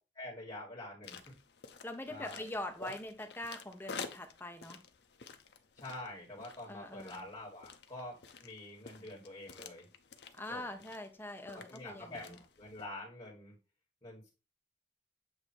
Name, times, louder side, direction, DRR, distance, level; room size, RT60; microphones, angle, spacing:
voice 1, 0.2-1.4 2.1-2.5 2.8-2.9 5.8-9.9 10.5-10.7 11.5-13.6 14.0-14.3, left 1 dB, 30° left, -4 dB, 1.9 m, -46 dB
sound 1, 1.0-12.8, left 5 dB, 65° left, 0.7 m, -51 dB
voice 2, 1.8-4.8 6.7-7.3 10.3-12.4, left 1 dB, 10° left, 5 dB, 0.7 m, -43 dB
8.0 x 2.7 x 4.4 m, 0.31 s
head